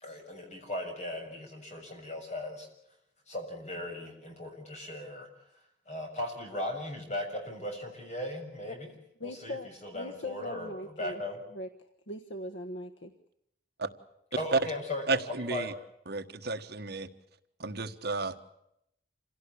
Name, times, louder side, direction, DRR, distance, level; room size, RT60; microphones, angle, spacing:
voice 1, 0.0-2.7 3.3-5.3 5.9-8.9 9.2-11.4 14.4-15.0 15.5-15.7, left 1 dB, 40° left, 3 dB, 6.8 m, -37 dB
voice 2, 9.2-9.7 9.9-11.2 11.5-11.7 12.1-13.1, left 1 dB, 85° left, 7 dB, 1.4 m, -40 dB
voice 3, 15.1-15.7 16.1-17.1 17.6-18.4, right 3 dB, 60° right, 7 dB, 1.5 m, -31 dB
27.5 x 17.0 x 8.5 m, 0.80 s
head